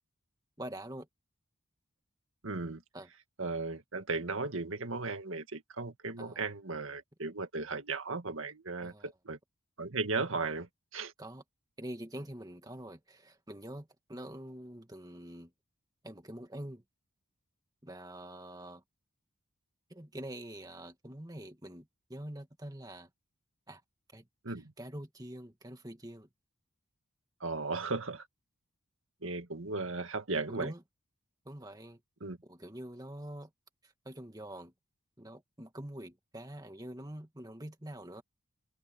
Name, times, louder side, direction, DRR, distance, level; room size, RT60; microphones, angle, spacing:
voice 1, 0.6-1.1 2.9-3.1 6.2-6.4 8.8-9.1 11.2-11.4 11.8-15.5 16.0-16.8 17.8-18.8 19.9-23.1 23.7-23.8 24.1-24.3 24.8-26.3 30.5-30.8 31.5-32.0 32.4-33.5 33.8-34.7 35.2-38.2, right 1 dB, 15° right, 2.0 m, -45 dB
voice 2, 2.4-2.8 3.4-9.4 9.8-11.1 24.4-24.7 27.4-28.3 29.2-30.7 32.2-32.4, right 3 dB, 70° right, 1.9 m, -36 dB
head